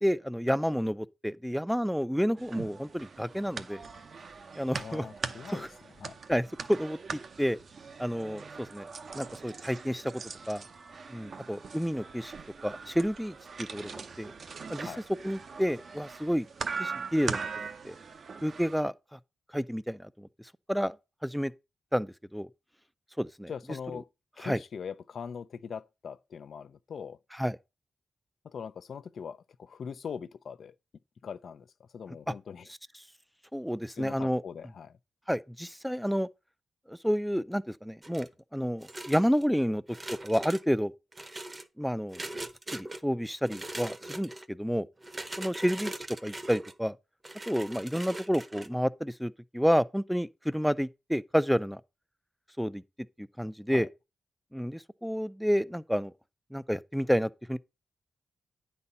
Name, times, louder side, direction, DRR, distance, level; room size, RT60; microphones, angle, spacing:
voice 1, 0.0-3.8 4.6-5.1 5.5-5.7 6.3-7.6 8.0-8.9 9.1-10.2 10.5-10.6 11.1-12.3 12.6-14.3 14.7-14.9 15.2-16.5 16.8-18.0 18.4-19.2 19.5-20.3 20.7-21.0 21.2-21.5 21.9-22.5 23.2-23.5 23.9-24.0 24.4-24.6 27.3-27.6 33.5-34.4 35.3-36.3 36.9-39.8 40.2-40.9 41.8-42.3 42.7-44.9 45.4-45.9 46.2-47.0 47.5-51.8 52.6-52.8 53.2-53.9 54.5-56.1 56.5-57.6, equal, ahead, 0.4 m, -30 dB
sound 1, 2.4-18.8, right 5 dB, 60° right, 0.7 m, -41 dB
voice 2, 4.8-5.7 6.0-6.2 14.8-15.0 23.5-24.1 24.4-27.2 28.4-30.7 31.2-32.7 34.0-35.0 53.7-53.9, left 6 dB, 70° left, 0.5 m, -41 dB
sound 2, 38.0-38.4 38.8-39.5 39.9-40.6 41.1-41.7 42.1-43.0 43.4-44.5 45.0-46.7 47.2-48.7, right 2 dB, 25° right, 0.8 m, -41 dB
9.7 x 4.2 x 5.4 m
wide cardioid pair, 100°, 0 cm